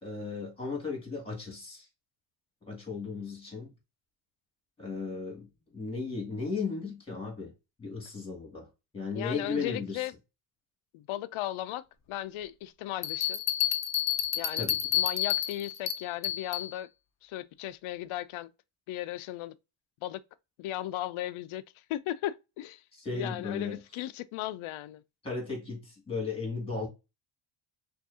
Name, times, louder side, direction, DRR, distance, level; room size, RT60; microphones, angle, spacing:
voice 1, 0.0-1.9 2.6-3.7 4.8-7.5 7.8-8.7 8.9-10.0 14.6-14.8 22.9-23.8 25.2-26.9, left 4 dB, 10° left, 2.2 m, -35 dB
voice 2, 9.2-10.1 10.9-13.4 14.3-14.7 15.0-16.9 17.2-18.5 18.9-19.5 20.0-20.2 20.6-21.6 21.9-22.8 23.1-25.0, left 14 dB, 80° left, 0.6 m, -36 dB
sound 1, 13.0-16.7, left 11 dB, 35° left, 0.6 m, -30 dB
6.0 x 2.6 x 2.7 m
cardioid pair, 150°, 48 cm